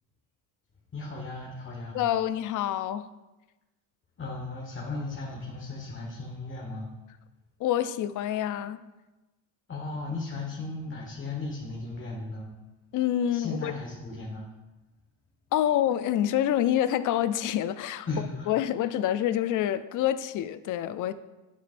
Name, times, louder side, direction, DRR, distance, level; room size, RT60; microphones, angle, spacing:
voice 1, 0.9-2.0 4.2-6.9 9.7-12.5 13.3-14.5 18.1-18.5, left 3 dB, 25° left, 1.4 m, -36 dB
voice 2, 1.9-3.0 7.6-8.8 12.9-13.7 15.5-18.1 18.5-21.1, left 11 dB, 45° left, 0.4 m, -27 dB
9.2 x 7.4 x 2.5 m
cardioid pair, 110°, 45 cm